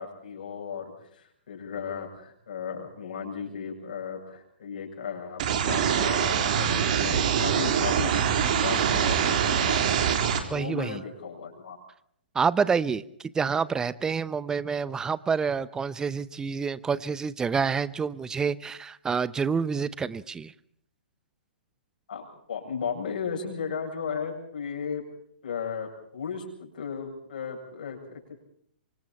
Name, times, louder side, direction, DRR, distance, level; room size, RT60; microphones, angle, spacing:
voice 1, 0.0-10.0 10.5-11.8 22.1-25.0 25.4-28.4, left 6 dB, 60° left, 1 dB, 7.7 m, -35 dB
sound 1, 5.4-10.4, right 8 dB, 50° right, 3.6 m, -24 dB
voice 2, 10.5-11.0 12.3-20.5, right 5 dB, 10° right, 18 dB, 0.8 m, -28 dB
26.5 x 25.5 x 4.4 m, 0.66 s
figure-of-eight pair, 115°, 6 cm